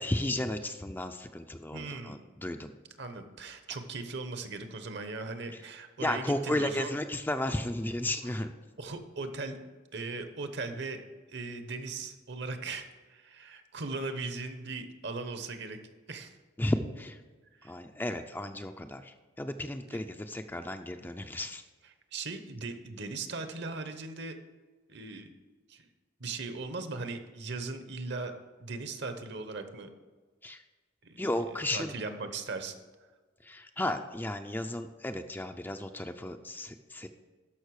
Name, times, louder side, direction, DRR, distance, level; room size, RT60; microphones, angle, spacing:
voice 1, 0.0-2.7 5.5-5.6 6.0-8.5 16.6-17.2 17.6-21.6 30.4-30.6 31.2-31.9 33.4-37.1, left 1 dB, 10° left, 7 dB, 0.4 m, -34 dB
voice 2, 1.7-2.2 3.0-7.0 8.8-9.6 9.9-11.0 11.3-15.8 16.1-16.3 17.5-17.7 19.9-20.0 22.1-24.4 24.9-25.3 25.7-25.9 26.2-28.3 28.6-29.9 31.0-31.2 31.7-32.7, right 3 dB, 60° right, 8 dB, 1.0 m, -38 dB
13.0 x 5.4 x 4.8 m, 1.3 s
head